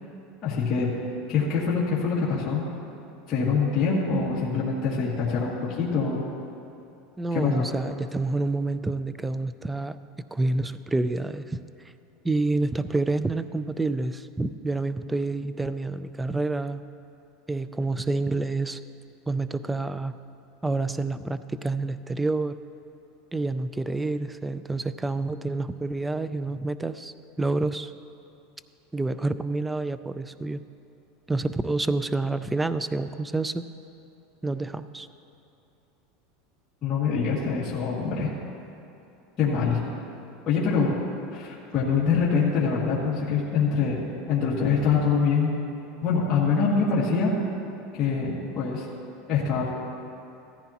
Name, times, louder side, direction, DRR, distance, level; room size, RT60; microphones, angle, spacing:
voice 1, 0.4-0.9 1.3-2.6 3.3-6.2 7.3-7.5 36.8-38.3 39.4-39.8 40.5-41.0 41.3-44.0 44.3-45.5 46.0-47.3 47.9-48.8 49.3-49.7, left 5 dB, 30° left, -8 dB, 2.2 m, -24 dB
voice 2, 7.2-10.0 10.3-11.6 12.2-16.9 17.5-18.8 19.3-20.2 20.6-22.6 23.3-27.9 28.9-30.7 31.3-33.6 34.4-35.1, right 2 dB, 10° right, 13 dB, 0.3 m, -28 dB
16.0 x 14.0 x 2.9 m, 2.8 s
supercardioid pair, 150°, 0 cm